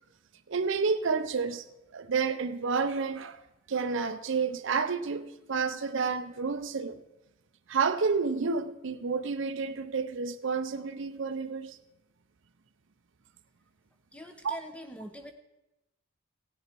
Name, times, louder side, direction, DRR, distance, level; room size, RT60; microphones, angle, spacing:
voice 1, 0.5-1.6 1.9-3.4 3.7-7.0 7.7-11.8 14.4-14.6, right 5 dB, 60° right, 0.6 m, -30 dB
voice 2, 14.1-15.3, equal, 5° left, 0.9 m, -43 dB
17.5 x 6.7 x 4.5 m
head